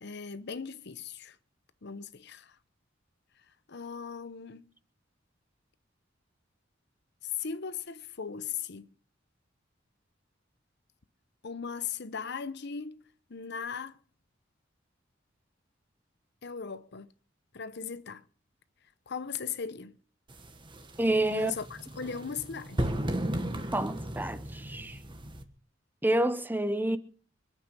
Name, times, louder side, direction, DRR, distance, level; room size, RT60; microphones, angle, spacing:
voice 1, 0.0-1.4 1.8-2.6 3.7-4.6 7.4-8.9 11.4-13.0 13.3-14.0 16.4-17.1 17.5-18.2 19.1-20.0 21.3-22.9, left 6 dB, 60° left, 0.8 m, -38 dB
sound 1, 20.3-25.4, right 1 dB, 25° right, 1.4 m, -35 dB
voice 2, 21.0-21.5 23.7-25.0 26.0-27.0, right 1 dB, 10° right, 0.7 m, -28 dB
25.0 x 8.7 x 5.5 m
head